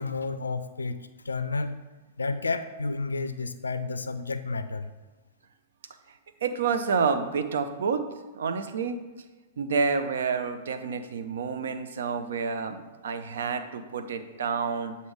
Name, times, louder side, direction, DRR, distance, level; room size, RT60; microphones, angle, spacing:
voice 1, 0.0-1.8 2.2-4.9, left 3 dB, 75° left, 10 dB, 0.4 m, -31 dB
voice 2, 6.1-8.0 8.3-9.0 9.6-15.0, right 5 dB, 65° right, 9 dB, 0.5 m, -29 dB
7.8 x 2.8 x 4.7 m, 1.2 s
figure-of-eight pair, 100°, 0 cm